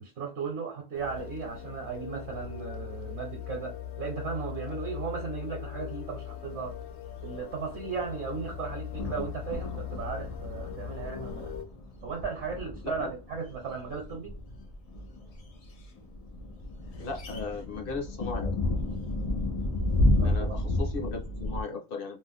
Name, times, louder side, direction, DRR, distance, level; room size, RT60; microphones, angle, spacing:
voice 1, 0.0-6.7 7.2-11.5 12.0-14.3 20.2-20.6, right 5 dB, 65° right, 1.0 m, -36 dB
sound 1, 0.9-11.7, left 10 dB, 85° left, 1.0 m, -40 dB
sound 2, 6.5-6.7 7.2-7.4 7.8-21.6, left 1 dB, 70° left, 0.3 m, -32 dB
voice 2, 17.0-18.5 20.2-22.2, left 4 dB, 55° left, 0.8 m, -36 dB
2.6 x 2.0 x 3.5 m
omnidirectional pair, 1.3 m